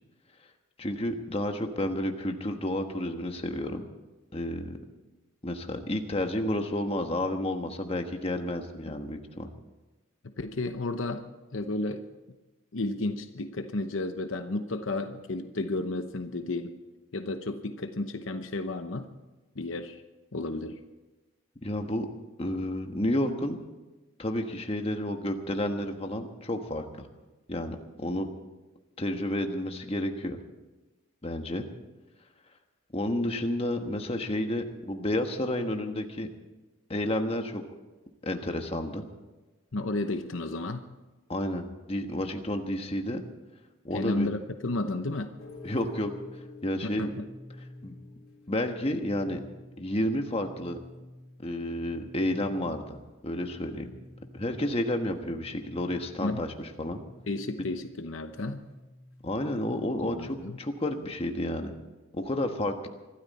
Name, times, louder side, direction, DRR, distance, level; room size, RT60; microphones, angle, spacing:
voice 1, 0.8-3.8 4.3-4.8 5.4-9.5 21.6-22.1 22.4-23.6 24.2-27.1 27.5-28.3 29.0-30.4 31.2-31.7 32.9-36.3 36.9-37.6 38.2-39.0 41.3-43.2 43.8-44.3 45.6-46.1 46.6-47.1 47.8-48.0 48.5-49.4 49.8-50.8 51.4-53.0 53.2-53.9 54.3-57.0 59.2-61.7 62.1-62.9, left 1 dB, 30° left, 5 dB, 1.4 m, -31 dB
voice 2, 10.4-11.2 11.5-12.1 12.7-16.7 17.1-19.1 19.6-20.0 20.3-20.8 39.7-40.8 43.9-45.3 46.8-47.3 56.2-56.4 57.3-58.6 60.0-60.6, left 2 dB, 65° left, 8 dB, 0.9 m, -32 dB
sound 1, 45.4-61.2, left 2 dB, 80° left, 3.4 m, -50 dB
24.5 x 13.0 x 4.3 m, 1.1 s
head